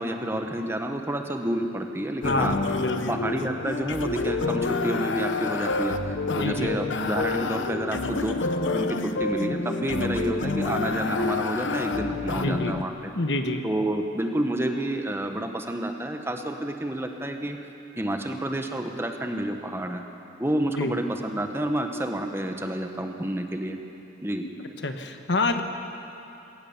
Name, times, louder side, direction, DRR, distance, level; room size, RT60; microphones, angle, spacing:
voice 1, 0.0-2.6 3.1-13.1 13.6-17.6 18.0-20.0 20.4-23.8 24.2-24.4, right 1 dB, 15° right, 5 dB, 1.1 m, -29 dB
sound 1, 2.2-12.8, left 3 dB, 90° left, 0.8 m, -28 dB
voice 2, 2.2-3.2 6.3-6.7 12.3-12.7 13.1-13.6 20.8-20.9 24.4-24.5 24.8-25.6, left 2 dB, 70° left, 6 dB, 1.3 m, -27 dB
20.0 x 18.0 x 7.3 m, 2.8 s
head